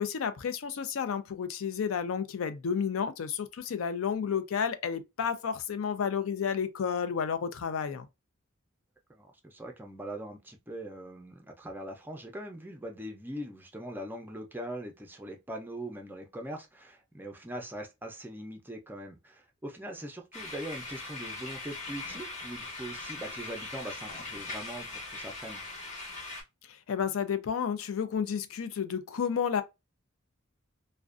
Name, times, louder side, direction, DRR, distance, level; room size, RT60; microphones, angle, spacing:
voice 1, 0.0-8.1 26.7-29.6, left 7 dB, 75° left, 0.4 m, -31 dB
voice 2, 9.1-25.6, right 1 dB, 10° right, 0.5 m, -41 dB
sound 1, 20.3-26.4, left 2 dB, 35° left, 0.8 m, -40 dB
2.4 x 2.1 x 2.4 m
head